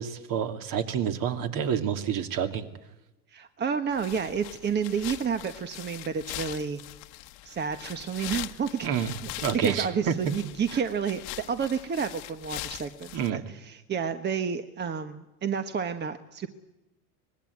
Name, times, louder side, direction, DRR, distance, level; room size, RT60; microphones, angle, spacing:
voice 1, 0.0-2.7 8.8-10.1 13.1-13.5, right 8 dB, 45° right, 7 dB, 2.7 m, -29 dB
voice 2, 3.3-6.8 7.4-8.9 9.5-16.5, right 6 dB, 25° right, 9 dB, 1.3 m, -30 dB
sound 1, 3.9-13.3, left 18 dB, 55° left, 1.4 m, -41 dB
24.5 x 20.5 x 8.5 m, 0.99 s
supercardioid pair, 120°, 44 cm